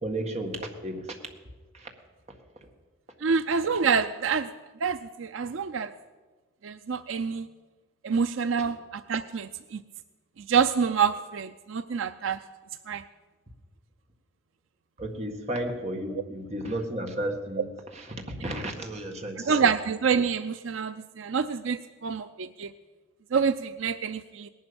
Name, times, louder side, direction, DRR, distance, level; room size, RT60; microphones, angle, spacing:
voice 1, 0.0-0.6 0.8-1.2 1.7-1.9 15.0-19.7, right 1 dB, 35° right, 3 dB, 1.8 m, -33 dB
voice 2, 3.2-4.5 4.8-5.9 6.6-7.5 8.0-9.8 10.5-12.4 12.9-13.0 19.4-22.7 23.3-24.5, right 6 dB, 75° right, 11 dB, 0.5 m, -27 dB
18.5 x 11.0 x 7.0 m, 1.3 s
head